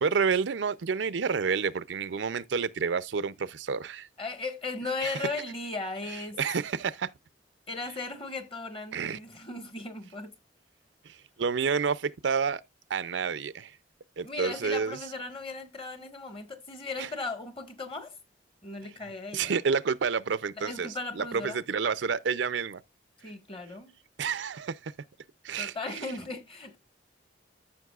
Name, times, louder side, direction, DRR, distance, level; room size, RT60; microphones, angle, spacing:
voice 1, 0.0-4.1 5.0-5.3 6.4-7.1 8.9-9.2 11.0-12.6 12.9-13.8 14.2-15.0 17.0-17.1 19.3-20.9 21.1-22.8 24.2-24.9 25.4-25.7, right 5 dB, 70° right, 0.5 m, -29 dB
voice 2, 4.2-6.4 7.7-10.3 14.2-18.1 18.6-19.5 20.6-21.6 23.2-23.9 25.6-26.8, left 3 dB, 30° left, 1.6 m, -37 dB
14.0 x 5.9 x 2.4 m
head